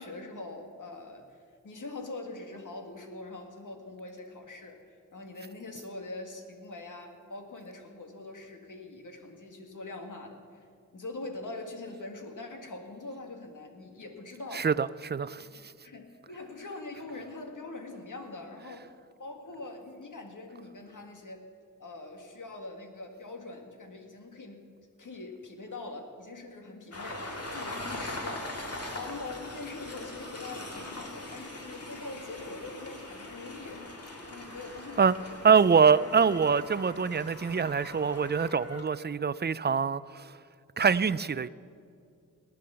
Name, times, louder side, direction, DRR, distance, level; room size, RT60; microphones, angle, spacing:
voice 1, 0.0-1.4 1.6-10.7 10.9-14.7 15.5-18.9 19.2-21.5 21.8-35.5 35.8-36.1, left 2 dB, 70° left, 2.0 m, -43 dB
voice 2, 14.5-15.5 35.0-35.2 35.4-40.3 40.8-41.5, right 6 dB, 35° right, 0.4 m, -24 dB
Train, 26.9-38.8, left 1 dB, 50° left, 2.3 m, -41 dB
18.5 x 10.0 x 6.9 m
wide cardioid pair, 90°, 32 cm